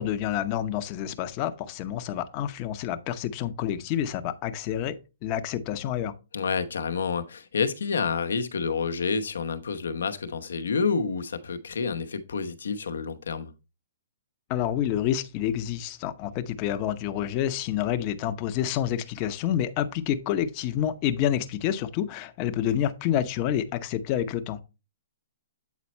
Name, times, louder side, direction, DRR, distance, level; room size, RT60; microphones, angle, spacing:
voice 1, 0.0-5.0 5.2-6.1 14.5-24.6, left 10 dB, 35° left, 0.7 m, -28 dB
voice 2, 6.3-13.5, left 5 dB, 85° left, 0.9 m, -29 dB
8.4 x 4.1 x 4.3 m
hypercardioid pair, 145°, 0 cm